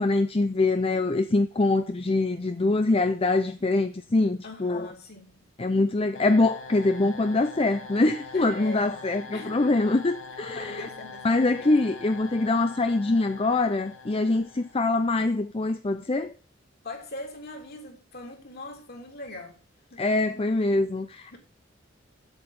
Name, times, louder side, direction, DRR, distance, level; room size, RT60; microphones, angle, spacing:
voice 1, 0.0-4.9 5.6-10.9 11.2-16.3 20.0-21.4, left 2 dB, 30° left, 0.6 m, -24 dB
voice 2, 4.4-5.4 8.3-9.0 9.3-9.6 10.5-12.2 16.8-19.6 19.9-20.0 21.3-21.4, left 2 dB, 55° left, 3.4 m, -41 dB
sound 1, 6.1-15.1, left 4 dB, 90° left, 1.8 m, -43 dB
8.1 x 7.8 x 8.3 m
head